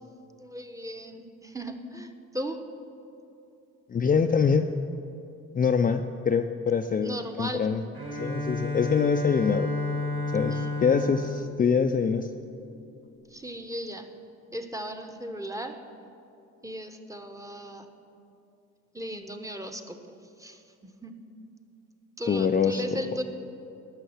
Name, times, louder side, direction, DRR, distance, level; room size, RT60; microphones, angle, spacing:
voice 1, 0.4-2.1 2.3-2.6 7.0-7.7 10.5-11.1 13.3-14.1 14.5-15.8 16.6-17.9 18.9-20.0 20.4-21.1 22.2-23.2, equal, 10° right, 6 dB, 0.9 m, -36 dB
voice 2, 3.9-4.7 5.5-7.8 8.2-9.7 10.3-12.3 22.2-22.8, left 6 dB, 30° left, 5 dB, 0.4 m, -24 dB
Bowed string instrument, 7.9-12.7, left 2 dB, 45° right, 2.3 m, -32 dB
11.5 x 6.7 x 7.2 m, 2.6 s
cardioid pair, 90°, 30 cm